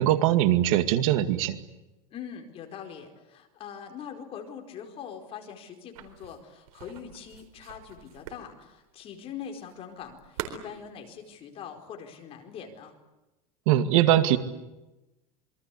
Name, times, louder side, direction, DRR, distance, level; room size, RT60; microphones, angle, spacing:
voice 1, 0.0-1.6 13.7-14.4, right 12 dB, 70° right, 10 dB, 2.2 m, -21 dB
voice 2, 2.1-13.0, left 8 dB, 30° left, 4 dB, 4.7 m, -42 dB
sound 1, 5.9-11.2, right 11 dB, 90° right, 4.1 m, -43 dB
27.5 x 23.5 x 8.5 m, 1.0 s
supercardioid pair, 155°, 18 cm